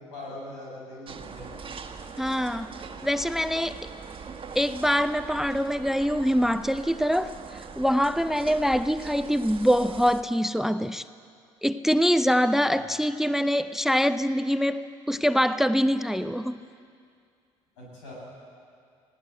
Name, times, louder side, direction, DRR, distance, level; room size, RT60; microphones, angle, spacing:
voice 1, 0.0-1.5 12.7-12.9 17.8-18.1, left 1 dB, 80° left, -4 dB, 7.3 m, -41 dB
sound 1, 1.1-10.2, right 5 dB, 35° right, 1.6 m, -42 dB
voice 2, 2.2-2.7 3.0-3.9 4.5-7.3 7.8-11.0 11.6-16.6, equal, ahead, 14 dB, 0.6 m, -24 dB
20.0 x 17.5 x 7.9 m, 2.3 s
hypercardioid pair, 50°, 15 cm